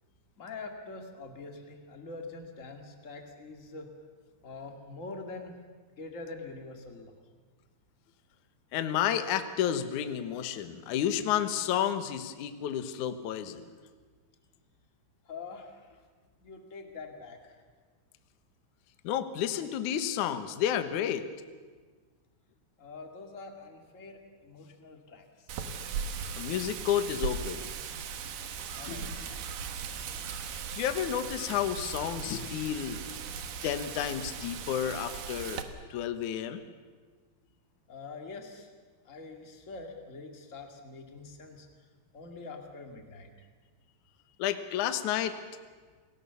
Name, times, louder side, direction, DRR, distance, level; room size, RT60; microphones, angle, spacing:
voice 1, 0.4-3.9 4.4-5.5 6.0-7.1 15.2-16.0 16.4-17.6 22.8-25.6 28.7-29.4 37.9-38.7 39.0-41.7 42.1-43.3, left 3 dB, 40° left, 3 dB, 1.0 m, -45 dB
voice 2, 8.7-13.6 19.0-21.3 26.3-27.6 28.9-29.1 30.7-33.1 33.6-35.6 35.9-36.6 44.4-45.4, left 10 dB, 75° left, 9 dB, 1.8 m, -31 dB
Wind, 25.5-35.6, right 7 dB, 65° right, 2.5 m, -38 dB
29.0 x 19.5 x 7.1 m, 1.5 s
omnidirectional pair, 5.5 m